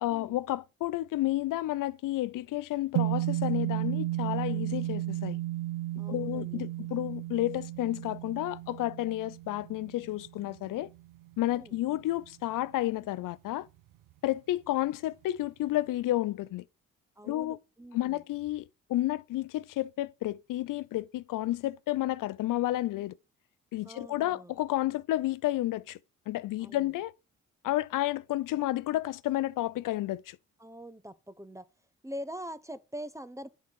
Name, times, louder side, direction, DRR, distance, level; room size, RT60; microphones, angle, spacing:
voice 1, 0.0-5.4 6.1-10.9 11.4-13.7 14.2-16.6 17.2-17.6 17.9-23.1 23.7-26.0 26.3-27.1 27.6-30.4, left 15 dB, 65° left, 0.6 m, -31 dB
sound 1, 2.9-11.4, right 16 dB, 65° right, 0.6 m, -33 dB
voice 2, 6.0-6.6 11.5-11.8 17.2-18.2 23.8-24.5 26.6-26.9 30.6-31.6 32.0-33.5, equal, 10° right, 0.8 m, -43 dB
8.3 x 4.1 x 6.2 m
hypercardioid pair, 45°, 35 cm